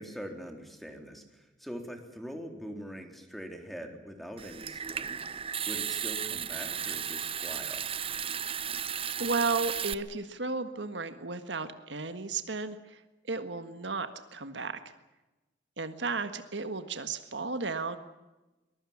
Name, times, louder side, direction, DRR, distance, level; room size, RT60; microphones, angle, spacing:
voice 1, 0.0-5.2 5.6-7.9, equal, ahead, 4 dB, 3.6 m, -43 dB
Water tap faucet / Sink (filling or washing) / Trickle dribble, 4.4-9.9, right 8 dB, 30° right, 0.7 m, -35 dB
voice 2, 9.2-13.0 13.3-14.8 15.8-18.0, right 4 dB, 70° right, 9 dB, 1.6 m, -34 dB
23.0 x 22.0 x 7.3 m, 1.1 s
head